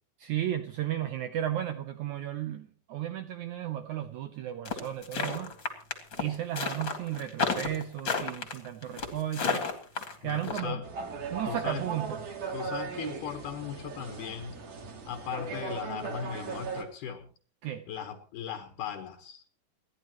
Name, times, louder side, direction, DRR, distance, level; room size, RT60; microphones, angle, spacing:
voice 1, 0.2-5.5 6.2-9.7 10.2-10.8 11.3-12.2 17.6-17.8, right 11 dB, 80° right, 8 dB, 1.7 m, -34 dB
sound 1, 4.7-10.6, left 5 dB, 40° left, 2.1 m, -31 dB
voice 2, 10.2-10.9 11.5-11.8 12.5-14.6 15.1-17.3 17.9-19.4, left 8 dB, 65° left, 5 dB, 2.6 m, -38 dB
sound 2, 10.8-16.8, right 5 dB, 45° right, 2.5 m, -38 dB
29.5 x 10.5 x 3.0 m, 0.40 s
omnidirectional pair, 4.4 m